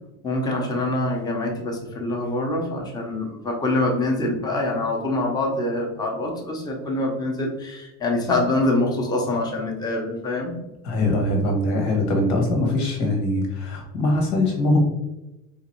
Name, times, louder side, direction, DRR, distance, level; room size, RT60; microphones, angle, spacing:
voice 1, 0.2-10.6, left 2 dB, 10° left, 0 dB, 0.7 m, -25 dB
voice 2, 10.8-14.8, left 1 dB, 85° left, 2 dB, 1.5 m, -22 dB
3.6 x 3.0 x 4.3 m, 0.96 s
cardioid pair, 150°, 35 cm